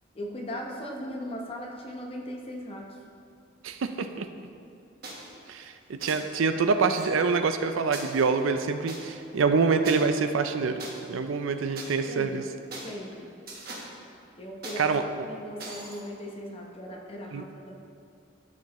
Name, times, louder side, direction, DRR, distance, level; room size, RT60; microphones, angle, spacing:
voice 1, 0.1-3.0 12.1-12.5 12.8-13.3 14.4-17.8, equal, 30° left, 0 dB, 0.9 m, -38 dB
voice 2, 3.6-4.3 5.5-12.4 14.8-15.2 17.3-17.5, right 4 dB, 80° right, 8 dB, 0.4 m, -26 dB
sound 1, 5.0-5.3 6.0-6.2 6.9-7.0 7.9-9.0 9.8-9.9 10.8-10.9 11.7-11.9 12.7-12.9 13.5-13.9 14.6-14.8 15.6-16.0, right 2 dB, 50° right, 1.3 m, -40 dB
12.5 x 5.0 x 3.1 m, 2.5 s
head